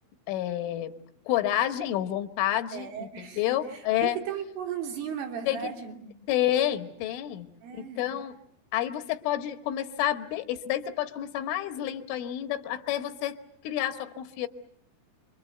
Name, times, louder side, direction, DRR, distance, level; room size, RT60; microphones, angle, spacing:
voice 1, 0.3-0.9 1.3-4.2 5.5-5.6 6.3-7.5 7.8-8.4 8.7-13.4 13.7-14.5, left 12 dB, 80° left, 8 dB, 3.8 m, -29 dB
voice 2, 2.7-6.1 7.6-8.1, right 8 dB, 80° right, 2 dB, 5.7 m, -36 dB
27.5 x 23.5 x 7.9 m, 0.70 s
omnidirectional pair, 5.6 m